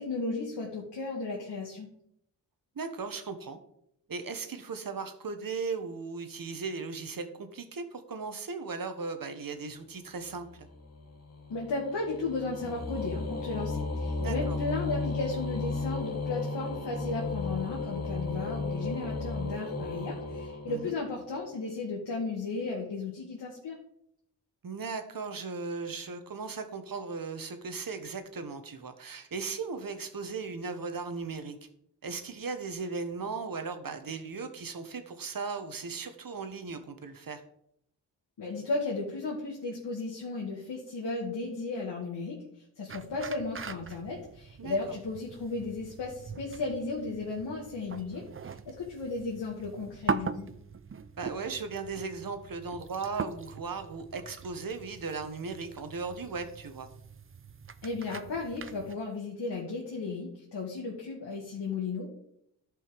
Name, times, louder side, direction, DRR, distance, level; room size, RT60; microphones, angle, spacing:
voice 1, 0.0-1.9 11.5-23.8 38.4-42.4 42.8-48.3 48.7-50.5 57.8-62.1, left 3 dB, 65° left, -3 dB, 2.2 m, -35 dB
voice 2, 2.7-3.6 4.1-10.7 14.2-14.6 20.7-21.0 24.6-31.6 32.0-37.4 44.6-44.8 51.2-56.9, right 4 dB, 50° right, 8 dB, 1.4 m, -37 dB
sound 1, 10.3-21.2, left 3 dB, 35° left, 1.6 m, -35 dB
sound 2, 42.9-59.0, right 5 dB, 30° right, 0.6 m, -41 dB
11.5 x 5.5 x 5.3 m, 0.73 s
cardioid pair, 70°, 44 cm